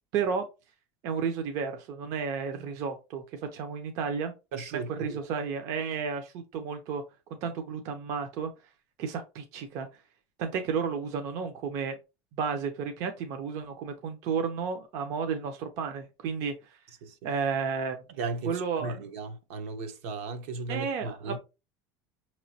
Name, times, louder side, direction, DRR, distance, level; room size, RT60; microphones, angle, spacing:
voice 1, 0.1-0.5 1.0-4.3 4.7-7.0 7.4-8.5 9.0-9.9 10.4-12.0 12.4-16.8 17.2-18.0 18.4-19.0 20.7-21.4, right 6 dB, 45° right, 0.6 m, -32 dB
voice 2, 4.5-5.2 17.0-17.3 18.2-21.4, right 3 dB, 75° right, 1.0 m, -36 dB
5.8 x 3.0 x 2.8 m
cardioid pair, 175°, 8 cm